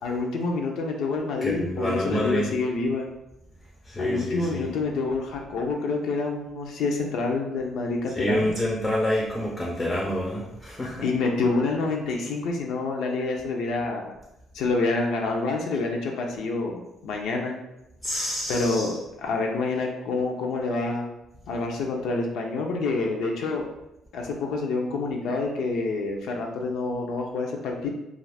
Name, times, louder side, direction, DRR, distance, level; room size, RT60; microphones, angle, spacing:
voice 1, 0.0-3.1 4.0-8.5 11.0-14.1 14.5-17.5 18.5-21.1 21.5-23.7 24.1-27.9, left 3 dB, 70° left, 1 dB, 0.5 m, -27 dB
voice 2, 1.4-2.5 3.9-4.7 8.1-11.0 18.0-18.9, left 1 dB, 15° left, -2 dB, 0.4 m, -27 dB
2.4 x 2.4 x 3.3 m, 0.88 s
cardioid pair, 135°, 0 cm